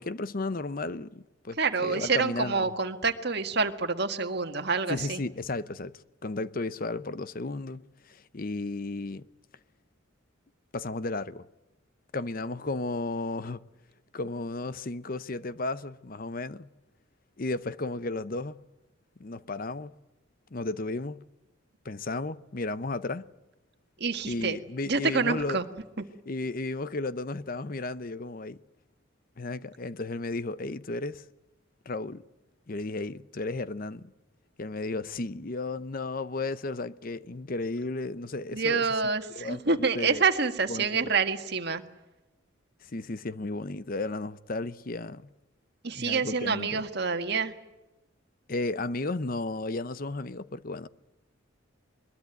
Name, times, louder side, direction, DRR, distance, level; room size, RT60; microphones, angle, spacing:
voice 1, 0.0-2.7 4.9-5.9 6.2-9.3 10.7-11.5 12.1-13.6 14.1-16.7 17.4-18.6 19.2-19.9 20.5-21.3 21.8-23.3 24.2-25.6 26.3-28.6 29.4-31.3 31.9-32.2 32.7-34.1 34.6-39.0 39.3-40.2 40.7-41.1 42.8-45.3 45.9-46.8 48.5-50.9, left 2 dB, 45° left, 0.8 m, -34 dB
voice 2, 1.6-5.2 24.0-24.6 24.9-25.6 38.5-41.8 45.8-47.5, right 4 dB, 55° right, 1.7 m, -27 dB
22.5 x 21.5 x 9.2 m
head